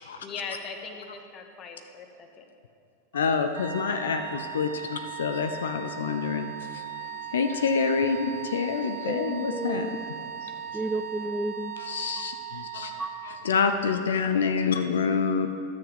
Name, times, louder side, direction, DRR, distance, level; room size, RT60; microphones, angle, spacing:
voice 1, 0.2-2.5, left 5 dB, 30° left, 4 dB, 1.1 m, -39 dB
voice 2, 3.1-6.8 7.3-9.9 10.4-10.5 11.8-12.9 13.2-15.5, left 5 dB, 65° left, 8 dB, 0.5 m, -27 dB
sound 1, 3.5-13.5, right 8 dB, 60° right, 1.2 m, -38 dB
voice 3, 9.1-10.1 10.7-11.7 13.0-13.1, right 2 dB, 5° right, 8 dB, 0.3 m, -32 dB
13.0 x 6.8 x 5.1 m, 2.5 s
figure-of-eight pair, 90°, 0 cm